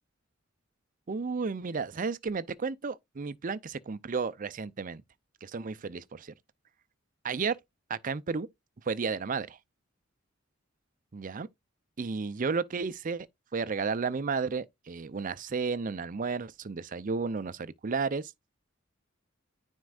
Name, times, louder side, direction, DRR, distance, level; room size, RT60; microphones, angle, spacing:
voice 1, 1.1-5.0 5.4-6.3 7.2-7.6 7.9-8.5 8.8-9.6 11.1-11.5 12.0-13.3 13.5-18.3, right 4 dB, 40° right, 0.5 m, -32 dB
9.6 x 4.5 x 2.4 m
head